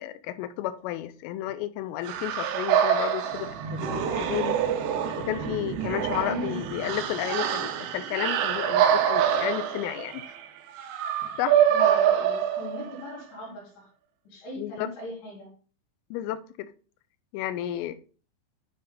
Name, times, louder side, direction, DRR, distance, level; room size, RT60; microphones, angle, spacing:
voice 1, 0.0-4.6 5.2-10.2 11.4-11.6 14.6-14.9 16.1-16.7 17.3-18.0, left 13 dB, 85° left, 3.1 m, -32 dB
sound 1, 2.0-13.1, right 9 dB, 80° right, 2.6 m, -26 dB
voice 2, 6.2-6.7 11.7-13.9 14.3-15.5, left 1 dB, 60° left, 4.4 m, -39 dB
11.0 x 4.1 x 3.9 m
omnidirectional pair, 5.9 m